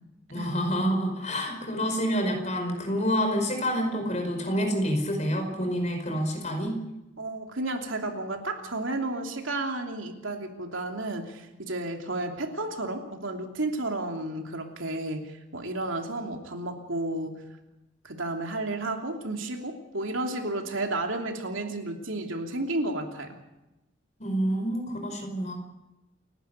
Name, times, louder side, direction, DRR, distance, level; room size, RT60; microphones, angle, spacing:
voice 1, 0.3-6.8 24.2-25.5, equal, 35° left, 4 dB, 5.2 m, -28 dB
voice 2, 7.2-17.4 18.0-23.4, right 2 dB, 80° right, 3 dB, 3.0 m, -32 dB
29.0 x 11.5 x 8.3 m, 0.97 s
head